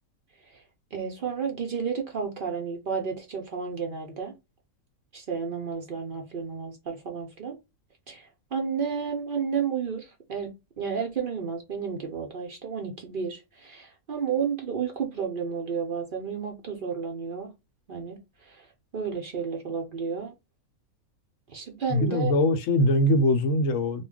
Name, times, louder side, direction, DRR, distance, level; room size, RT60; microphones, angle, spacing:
voice 1, 0.9-4.3 5.1-7.6 8.1-10.5 10.8-17.5 17.9-18.2 18.5-18.7 18.9-20.3 21.5-22.3, right 6 dB, 60° right, 0.5 m, -32 dB
voice 2, 21.9-24.0, left 1 dB, 70° left, 0.9 m, -22 dB
2.2 x 2.2 x 3.5 m
omnidirectional pair, 1.5 m